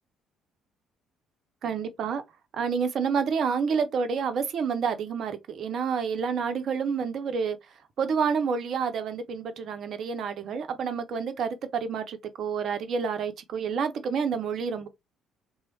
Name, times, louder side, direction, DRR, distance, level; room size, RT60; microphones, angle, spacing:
voice 1, 1.6-2.2 2.5-7.6 8.0-14.9, right 6 dB, 55° right, 0.6 m, -29 dB
3.0 x 2.0 x 2.8 m
figure-of-eight pair, 50°, 0 cm